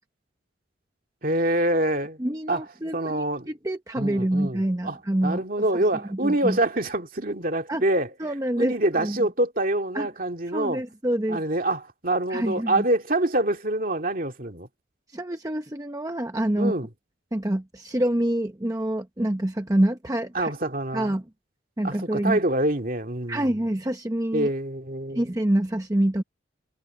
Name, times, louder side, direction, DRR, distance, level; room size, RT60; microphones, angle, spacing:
voice 1, 1.2-2.2 2.5-2.7 2.9-3.5 4.0-5.0 5.2-8.1 8.6-10.8 11.3-14.7 16.6-16.9 20.3-21.1 21.8-23.6 24.3-25.3, right 1 dB, 45° right, 2.4 m, -25 dB
voice 2, 2.2-5.4 6.2-6.6 7.7-7.8 8.2-9.2 9.9-10.1 10.5-11.4 12.3-12.8 15.1-16.7 17.3-20.5 20.9-21.2 21.8-22.4 23.3-24.5 25.1-26.2, right 1 dB, 15° right, 0.8 m, -26 dB
head